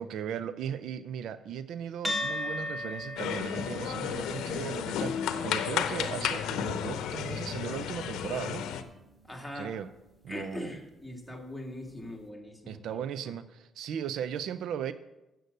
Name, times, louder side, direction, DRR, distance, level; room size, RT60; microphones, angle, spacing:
voice 1, 0.0-8.7 9.5-9.9 10.2-10.7 12.7-14.9, right 8 dB, 80° right, 14 dB, 0.4 m, -37 dB
sound 1, 2.0-10.7, left 1 dB, 25° right, 1.6 m, -41 dB
sound 2, 3.2-8.8, left 9 dB, 90° left, 0.7 m, -33 dB
voice 2, 9.2-9.7 10.3-13.3, left 1 dB, ahead, 1 dB, 2.4 m, -41 dB
8.1 x 7.7 x 6.6 m, 0.96 s
cardioid pair, 90°, 0 cm